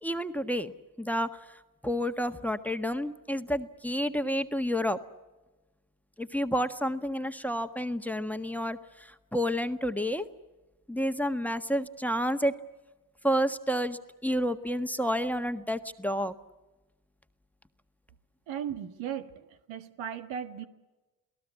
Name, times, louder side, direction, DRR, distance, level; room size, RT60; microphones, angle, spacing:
voice 1, 0.0-0.7 1.0-5.0 6.2-10.3 10.9-12.5 13.2-16.3, equal, 5° left, 9 dB, 1.5 m, -30 dB
voice 2, 18.5-20.6, right 9 dB, 80° right, 8 dB, 1.7 m, -37 dB
28.5 x 18.0 x 8.4 m, 1.1 s
supercardioid pair, 60°, 46 cm